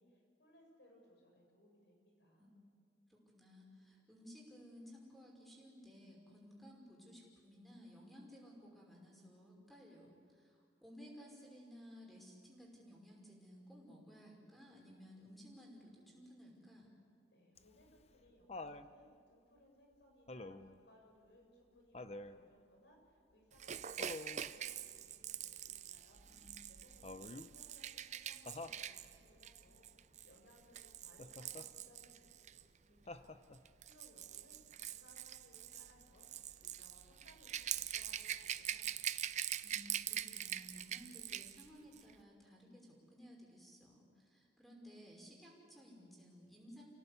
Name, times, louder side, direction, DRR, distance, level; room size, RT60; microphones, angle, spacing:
voice 1, 0.0-2.5 17.3-39.2, equal, 80° left, 1 dB, 6.7 m, -66 dB
voice 2, 3.1-16.9 26.3-26.5 39.6-46.8, equal, ahead, -2 dB, 5.6 m, -57 dB
Laughter, 17.6-18.9 20.3-20.8 21.9-22.4 24.0-24.5 27.0-27.5 28.5-28.8 31.2-31.7 33.1-33.7 35.1-35.2, left 2 dB, 35° left, 0.8 m, -48 dB
Rattle / Rattle (instrument), 23.6-32.6 33.5-41.7 41.9-42.1, right 10 dB, 40° right, 0.6 m, -44 dB
28.0 x 17.5 x 8.3 m, 2.1 s
head